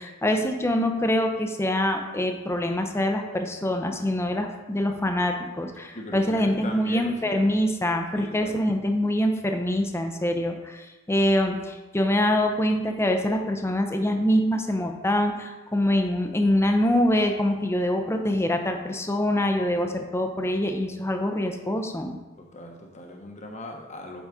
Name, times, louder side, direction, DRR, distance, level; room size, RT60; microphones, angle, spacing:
voice 1, 0.0-22.2, left 1 dB, 15° left, 5 dB, 0.6 m, -25 dB
voice 2, 5.9-7.6 8.1-8.5 22.4-24.3, left 1 dB, 35° left, 2 dB, 1.0 m, -39 dB
8.2 x 4.0 x 4.8 m, 1.1 s
head